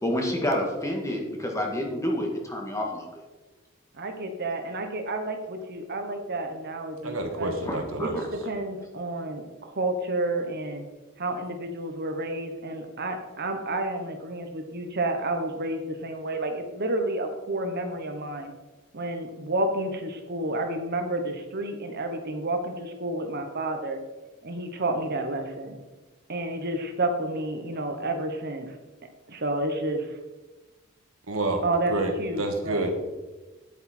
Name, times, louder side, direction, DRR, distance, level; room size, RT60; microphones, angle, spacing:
voice 1, 0.0-3.1 7.6-8.3, left 1 dB, 15° left, 1 dB, 1.8 m, -29 dB
voice 2, 3.9-7.5 8.0-10.8 11.2-18.5 18.9-24.0 24.4-25.8 26.3-28.7 29.4-30.0 31.6-32.9, right 2 dB, 50° right, 5 dB, 1.2 m, -30 dB
voice 3, 7.0-8.1 31.3-31.6 31.9-32.9, right 2 dB, 75° right, 4 dB, 1.8 m, -29 dB
10.5 x 8.4 x 4.4 m, 1.2 s
head